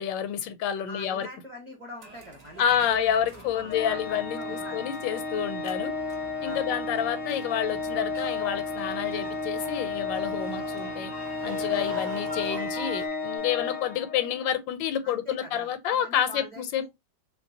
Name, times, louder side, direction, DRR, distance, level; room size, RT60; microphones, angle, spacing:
voice 1, 0.0-1.3 2.6-5.9 6.4-11.1 11.4-16.8, left 9 dB, 80° left, 1.3 m, -29 dB
voice 2, 0.9-3.1 3.3-4.8 6.4-6.6 15.0-16.9, left 1 dB, 20° right, 1.0 m, -44 dB
sound 1, 2.0-13.1, right 2 dB, 70° right, 0.3 m, -46 dB
Microwave oven, 2.6-13.3, equal, 55° right, 0.8 m, -48 dB
Organ, 3.7-14.5, left 3 dB, 60° left, 0.8 m, -33 dB
3.1 x 2.9 x 2.6 m
omnidirectional pair, 2.0 m